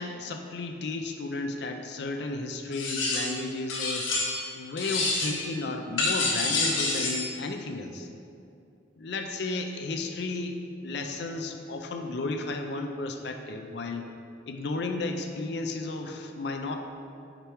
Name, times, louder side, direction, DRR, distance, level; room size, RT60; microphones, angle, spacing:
voice 1, 0.0-8.1 9.0-10.6 10.8-14.1 14.5-16.8, left 3 dB, 55° left, 5 dB, 0.4 m, -33 dB
sound 1, 2.7-3.4 3.7-4.5 4.8-5.5 6.0-7.3, left 3 dB, 80° left, 1.0 m, -28 dB
5.1 x 4.5 x 4.4 m, 2.5 s
head